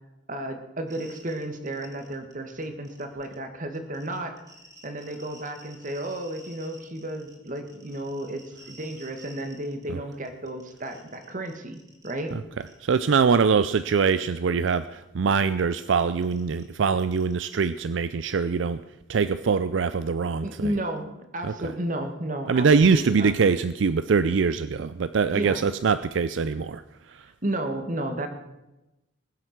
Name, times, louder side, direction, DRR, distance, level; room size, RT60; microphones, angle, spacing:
voice 1, 0.3-4.4 4.8-12.4 20.4-21.1 21.3-23.3 25.3-25.6 27.4-28.3, right 1 dB, 45° right, 7 dB, 1.7 m, -32 dB
sound 1, 0.9-2.3 2.6-3.3 3.7-9.8 10.1-12.3 12.6-13.2 13.7-13.8 14.1-14.2 14.7-14.8 15.8-17.7, right 2 dB, 20° right, 3.0 m, -51 dB
voice 2, 12.8-18.8 19.1-20.5 21.4-21.7 22.5-27.3, right 5 dB, 75° right, 14 dB, 0.4 m, -23 dB
20.5 x 7.9 x 6.0 m, 0.97 s
head